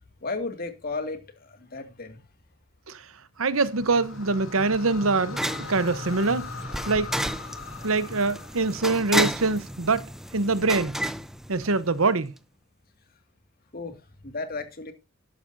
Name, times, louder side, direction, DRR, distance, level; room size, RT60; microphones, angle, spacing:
voice 1, 0.2-2.2 13.7-14.9, left 3 dB, 45° left, 2.2 m, -34 dB
sound 1, 3.4-9.8, left 3 dB, 75° left, 2.9 m, -40 dB
voice 2, 3.4-5.4 5.7-6.5 6.9-7.1 7.8-11.0 11.5-12.3, right 3 dB, 75° right, 1.0 m, -24 dB
sound 2, 3.8-12.1, right 1 dB, ahead, 0.7 m, -33 dB
12.0 x 12.0 x 2.7 m
head